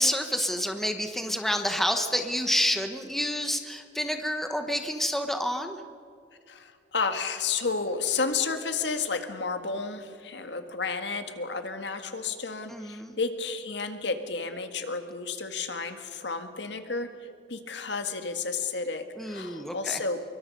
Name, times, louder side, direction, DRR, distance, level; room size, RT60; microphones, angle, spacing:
voice 1, 0.0-5.8 12.7-13.1 19.2-20.0, equal, ahead, 6 dB, 1.2 m, -28 dB
voice 2, 6.5-17.1 17.5-20.2, left 4 dB, 75° left, 8 dB, 1.7 m, -31 dB
24.5 x 23.5 x 5.4 m, 2.4 s
head